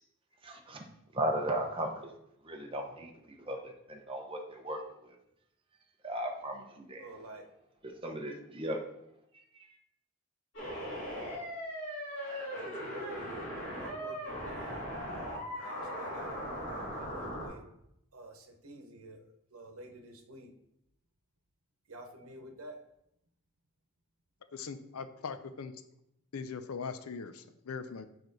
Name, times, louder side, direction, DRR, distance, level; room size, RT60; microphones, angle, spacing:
voice 1, 0.4-0.9 1.1-2.1 2.4-5.2 6.0-7.1 7.8-8.8 9.3-9.8, right 1 dB, 25° right, 2 dB, 0.8 m, -37 dB
voice 2, 7.0-7.5 12.5-13.5 13.8-17.7 18.1-19.2 19.5-20.5 21.9-22.8, right 2 dB, 80° right, 4 dB, 1.0 m, -49 dB
sound 1, 10.5-17.5, equal, 60° left, 2.7 m, -39 dB
voice 3, 24.5-25.7 26.3-28.1, left 5 dB, 90° left, 11 dB, 0.5 m, -40 dB
6.5 x 4.7 x 4.0 m, 0.79 s
head